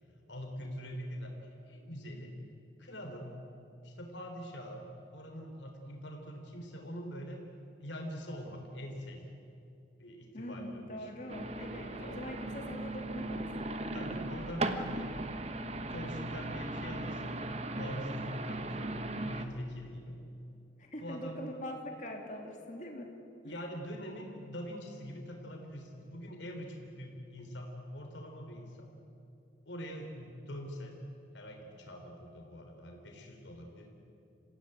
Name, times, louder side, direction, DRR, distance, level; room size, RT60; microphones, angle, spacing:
voice 1, 0.3-1.4 1.7-2.4 2.8-3.3 3.8-7.4 7.8-9.3 10.0-11.1 11.9-12.2 13.9-15.1 15.9-17.4 17.7-18.9 19.2-20.2 21.0-21.4 23.4-28.9 29.7-31.0 31.3-33.9, equal, 90° left, 2 dB, 3.6 m, -43 dB
voice 2, 10.3-13.5 20.8-23.1 23.4-23.6, equal, 40° left, 1 dB, 3.0 m, -43 dB
sound 1, 11.3-19.5, right 2 dB, 35° right, 1.2 m, -37 dB
26.5 x 16.5 x 9.0 m, 2.7 s
head